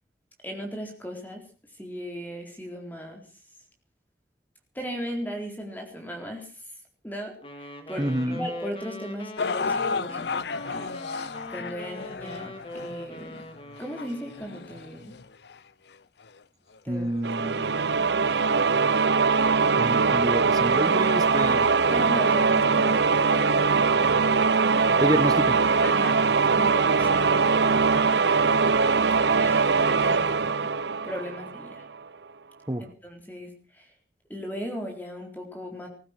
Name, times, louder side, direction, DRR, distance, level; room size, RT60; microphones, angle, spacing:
voice 1, 0.4-1.4 1.7-3.2 4.7-6.6 7.0-8.1 8.4-11.2 11.5-13.4 13.8-15.1 16.8-18.1 21.9-23.8 25.8-26.2 26.5-28.7 29.2-30.7 31.0-31.9 33.0-33.9 34.3-35.9, equal, 10° left, 2 dB, 4.1 m, -37 dB
Wind instrument woodwind instrument, 7.4-14.9, left 1 dB, 30° left, 2.4 m, -41 dB
voice 2, 8.0-8.5 16.9-17.7 19.8-21.7 25.0-25.6 32.7-32.8, right 1 dB, 20° right, 9 dB, 1.5 m, -28 dB
sound 1, 9.4-15.6 16.3-16.4 17.1-17.2, left 4 dB, 75° left, 0.7 m, -33 dB
sound 2, 17.2-31.8, right 4 dB, 80° right, 0.9 m, -22 dB
20.0 x 15.0 x 4.5 m, 0.38 s
head